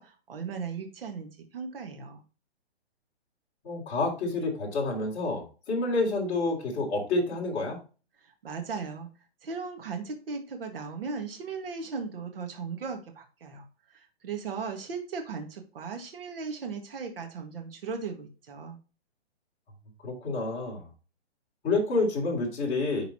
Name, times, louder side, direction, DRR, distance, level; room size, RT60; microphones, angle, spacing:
voice 1, 0.0-2.2 8.2-9.1 9.4-13.7 13.9-18.8, right 5 dB, 60° right, 4 dB, 1.8 m, -37 dB
voice 2, 3.6-7.8 20.0-20.8 21.6-23.0, left 3 dB, 20° left, -4 dB, 3.0 m, -28 dB
11.0 x 4.0 x 2.9 m, 0.33 s
hypercardioid pair, 170°, 32 cm